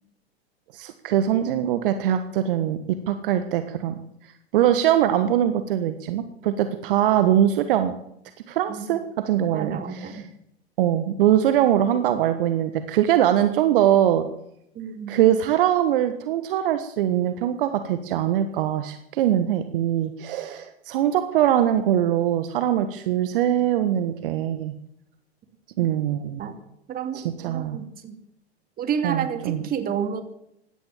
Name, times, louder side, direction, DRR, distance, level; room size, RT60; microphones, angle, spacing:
voice 1, 0.7-3.9 4.5-7.9 8.5-10.2 10.8-14.3 15.1-24.7 25.8-26.4 27.1-27.8 29.0-29.6, right 11 dB, 55° right, 9 dB, 1.4 m, -22 dB
voice 2, 9.5-10.3 14.7-15.1 25.8-25.9 26.4-26.6 26.9-28.2 28.8-30.2, right 7 dB, 30° right, 7 dB, 2.6 m, -30 dB
16.5 x 12.0 x 7.3 m, 0.76 s
hypercardioid pair, 105°, 32 cm